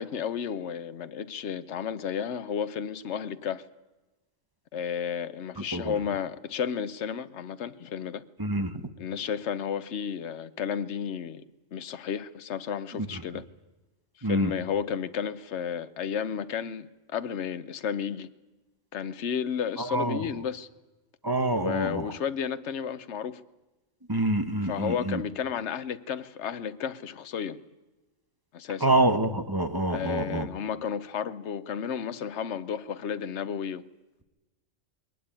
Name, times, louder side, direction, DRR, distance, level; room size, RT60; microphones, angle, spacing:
voice 1, 0.0-3.7 4.7-8.2 9.0-11.4 11.7-13.5 14.2-18.3 18.9-20.7 21.5-23.4 24.6-27.6 28.5-29.0 29.9-33.9, left 8 dB, 60° left, 1.2 m, -32 dB
voice 2, 8.4-8.7 14.2-14.5 19.8-20.2 21.2-22.1 24.1-25.2 28.8-30.5, right 2 dB, 20° right, 1.1 m, -26 dB
21.5 x 18.5 x 9.0 m
omnidirectional pair, 1.4 m